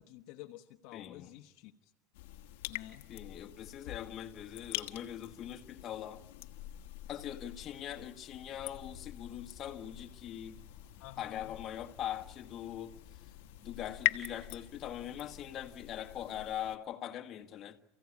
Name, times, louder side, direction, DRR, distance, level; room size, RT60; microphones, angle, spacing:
voice 1, 0.0-1.9 2.7-3.0 11.0-11.5, left 14 dB, 65° left, 1.1 m, -50 dB
voice 2, 0.9-1.3 3.1-6.2 7.1-10.6 11.2-13.2 13.6-17.8, left 10 dB, 40° left, 1.7 m, -42 dB
sound 1, 2.1-16.8, left 15 dB, 85° left, 1.3 m, -43 dB
sound 2, 8.6-15.8, left 5 dB, 15° left, 4.2 m, -62 dB
29.0 x 16.0 x 8.4 m
supercardioid pair, 135°, 0 cm